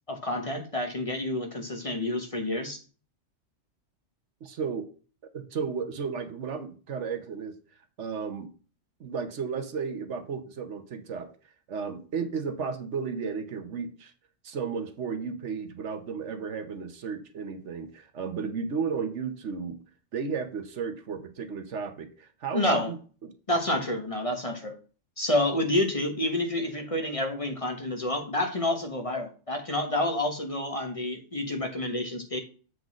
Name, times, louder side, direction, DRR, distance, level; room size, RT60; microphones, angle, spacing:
voice 1, 0.1-2.8 22.5-22.9 23.5-24.7 25.2-32.4, left 1 dB, 30° left, 4 dB, 1.1 m, -29 dB
voice 2, 4.4-4.9 5.3-7.6 8.0-8.5 9.0-11.3 11.7-14.1 14.4-19.8 20.1-23.0 23.2-23.3, right 6 dB, 70° right, 8 dB, 1.2 m, -33 dB
7.7 x 3.9 x 6.1 m, 0.38 s
omnidirectional pair, 1.3 m